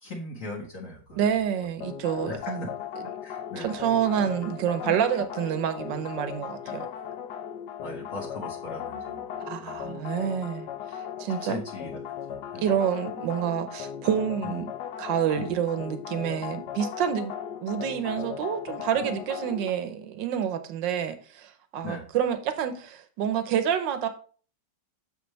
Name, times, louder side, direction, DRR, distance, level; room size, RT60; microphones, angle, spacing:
voice 1, 0.0-1.4 2.2-2.7 3.2-3.8 4.2-4.3 4.8-5.0 6.6-6.9 7.8-9.8 11.4-12.0 12.5-12.7 14.4-14.6 15.4-15.6 18.9-19.2 21.8-22.1, left 2 dB, 45° left, 1.8 m, -39 dB
voice 2, 1.2-2.7 3.6-6.9 9.4-11.6 12.6-14.7 15.0-17.3 17.6-24.1, right 9 dB, 85° right, 1.5 m, -28 dB
sound 1, 1.8-19.7, left 9 dB, 70° left, 1.2 m, -37 dB
6.9 x 6.7 x 3.2 m
omnidirectional pair, 2.0 m